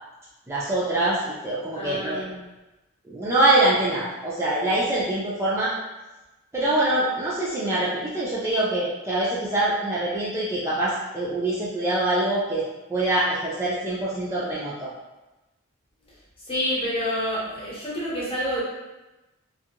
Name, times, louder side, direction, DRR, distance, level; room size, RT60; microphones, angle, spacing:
voice 1, 0.5-1.2 1.4-2.2 3.1-5.7 6.5-12.6 12.9-14.9, right 1 dB, 15° right, -8 dB, 0.4 m, -24 dB
voice 2, 1.7-2.4 16.5-18.6, equal, 25° left, -7 dB, 0.9 m, -28 dB
2.5 x 2.4 x 2.8 m, 1.1 s
head